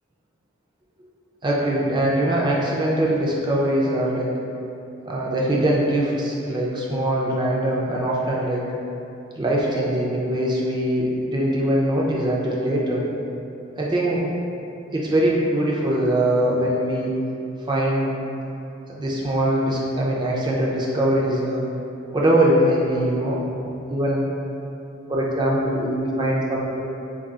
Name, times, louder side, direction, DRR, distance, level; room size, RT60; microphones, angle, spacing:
voice 1, 1.4-4.3 5.1-8.6 9.4-13.0 13.8-14.3 14.9-17.1 17.7-18.2 18.9-21.6 22.1-24.2 25.1-26.8, right 1 dB, 20° right, -4 dB, 0.3 m, -22 dB
2.4 x 2.3 x 3.8 m, 2.8 s
head